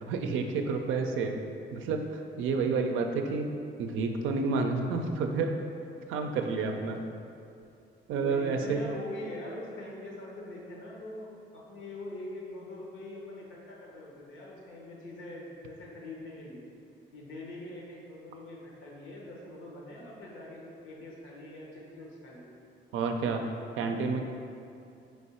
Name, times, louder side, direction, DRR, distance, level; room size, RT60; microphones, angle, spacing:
voice 1, 0.0-1.3 1.7-3.5 3.8-5.5 6.1-7.0 8.1-8.8 22.9-23.4 23.8-24.2, right 4 dB, 85° right, 4 dB, 0.4 m, -30 dB
voice 2, 8.2-16.6 17.1-22.5, left 1 dB, 80° left, -3 dB, 1.0 m, -43 dB
3.6 x 3.4 x 4.2 m, 2.5 s
cardioid pair, 90°, 20 cm